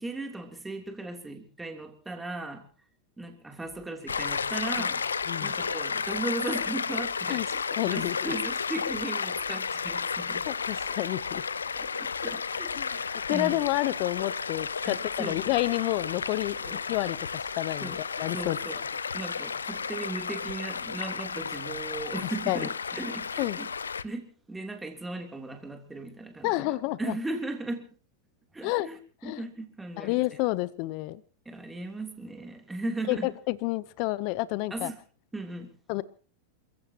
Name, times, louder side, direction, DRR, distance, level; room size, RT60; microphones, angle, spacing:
voice 1, 0.0-2.7 3.2-5.0 5.4-10.5 11.7-13.6 14.8-15.4 16.6-16.8 17.8-18.0 18.3-18.8 19.1-23.7 24.0-27.9 28.5-29.0 29.2-30.2 31.4-33.3 34.7-35.0 35.3-35.7, right 2 dB, 10° right, 4 dB, 3.3 m, -37 dB
sound 1, 3.5-18.6, right 6 dB, 75° right, 8.0 m, -60 dB
Stream, 4.1-24.0, left 5 dB, 85° left, 0.7 m, -33 dB
voice 2, 7.3-8.3 10.5-11.4 12.7-12.9 13.3-16.6 16.9-17.2 17.5-18.6 22.5-22.7 23.4-23.6 26.4-27.2 28.6-28.9 29.2-29.4 30.0-31.2 33.1-34.9 35.9-36.0, left 19 dB, 50° left, 18 dB, 0.9 m, -29 dB
28.0 x 16.0 x 3.0 m, 0.40 s
hypercardioid pair, 95°, 0 cm